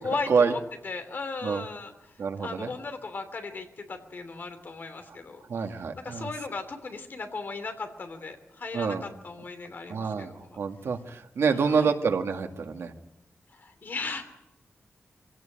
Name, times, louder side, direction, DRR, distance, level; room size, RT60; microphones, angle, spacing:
voice 1, 0.0-1.9 2.4-5.4 6.0-10.5 11.5-11.9 13.5-14.2, left 4 dB, 50° left, 7 dB, 2.9 m, -36 dB
voice 2, 2.2-2.7 5.5-6.3 8.7-9.0 9.9-12.9, right 5 dB, 80° right, 5 dB, 2.0 m, -27 dB
24.5 x 17.0 x 8.9 m, 0.87 s
wide cardioid pair, 165°, 4 cm